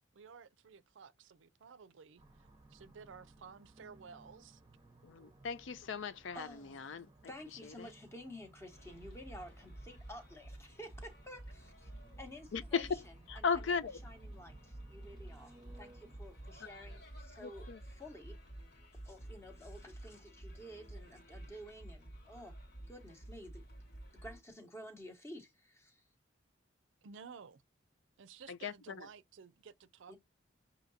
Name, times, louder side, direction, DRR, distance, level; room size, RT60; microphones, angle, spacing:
voice 1, 0.1-2.2 2.7-4.6 27.0-27.6 28.2-30.2, right 6 dB, 70° right, 0.4 m, -54 dB
sound 1, 2.2-17.0, right 2 dB, 20° right, 0.7 m, -62 dB
voice 2, 5.0-7.1 7.8-7.9 12.5-13.0 13.3-14.0 17.4-17.8 28.5-29.1, left 5 dB, 70° left, 0.5 m, -37 dB
voice 3, 6.3-6.9 7.3-11.9 12.2-18.4 19.0-22.5 22.9-23.8 24.2-26.0 30.1-30.2, equal, 15° left, 0.9 m, -52 dB
sound 2, 8.7-24.4, right 1 dB, 50° left, 1.3 m, -51 dB
6.3 x 2.7 x 2.7 m
head